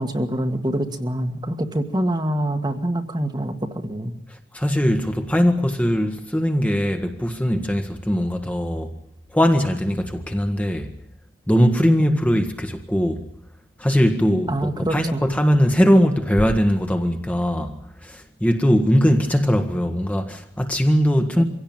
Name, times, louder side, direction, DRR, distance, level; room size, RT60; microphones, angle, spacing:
voice 1, 0.0-4.2 12.0-12.3 14.5-15.2 21.4-21.5, right 1 dB, 25° right, 1.7 m, -25 dB
voice 2, 4.3-8.9 9.3-10.9 11.5-13.2 13.8-17.7 18.0-21.4, equal, 10° left, 1.6 m, -20 dB
24.0 x 17.0 x 8.9 m
head